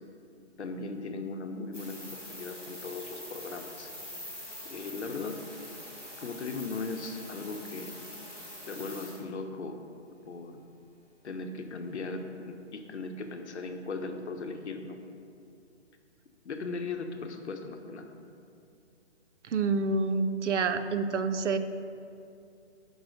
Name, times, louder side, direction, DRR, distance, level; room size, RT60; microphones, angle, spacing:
voice 1, 0.6-3.9 4.6-5.4 6.2-7.9 8.6-9.8 10.2-10.6 11.2-15.0 16.4-18.1, left 3 dB, 70° left, 5 dB, 0.9 m, -38 dB
sound 1, 1.7-9.2, left 1 dB, ahead, 0.8 m, -44 dB
voice 2, 19.5-21.6, right 4 dB, 90° right, 10 dB, 0.6 m, -28 dB
5.5 x 5.2 x 6.4 m, 2.5 s
hypercardioid pair, 175°, 35 cm